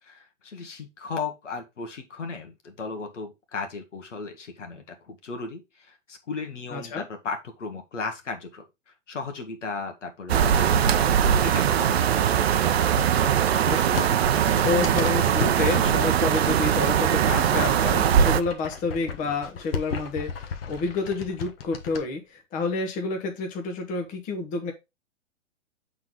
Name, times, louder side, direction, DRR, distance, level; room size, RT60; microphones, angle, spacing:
voice 1, 0.0-8.6 9.1-12.3, left 4 dB, 70° left, 4 dB, 1.7 m, -36 dB
voice 2, 6.7-7.0 13.7-24.7, left 4 dB, 20° left, 3 dB, 1.3 m, -29 dB
sound 1, 10.3-18.4, right 9 dB, 55° right, 0.7 m, -21 dB
sound 2, 11.8-15.6 16.3-17.6 17.9-22.0, left 6 dB, 50° left, 1.3 m, -36 dB
7.5 x 4.0 x 3.8 m, 0.23 s
figure-of-eight pair, 120°, 38 cm